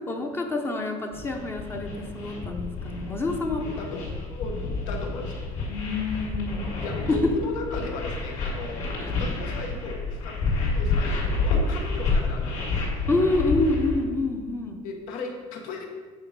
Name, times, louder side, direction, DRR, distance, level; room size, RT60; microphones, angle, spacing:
voice 1, 0.1-3.6 5.7-7.3 9.0-9.1 13.1-14.8, left 2 dB, 15° left, 3 dB, 0.6 m, -27 dB
sound 1, 1.1-14.0, left 3 dB, 60° left, 2.7 m, -29 dB
voice 2, 3.5-5.4 6.8-8.9 9.2-10.4 10.7-12.9 14.8-15.9, left 3 dB, 85° left, 2 dB, 1.5 m, -36 dB
8.9 x 4.9 x 5.2 m, 1.5 s
cardioid pair, 175°, 14 cm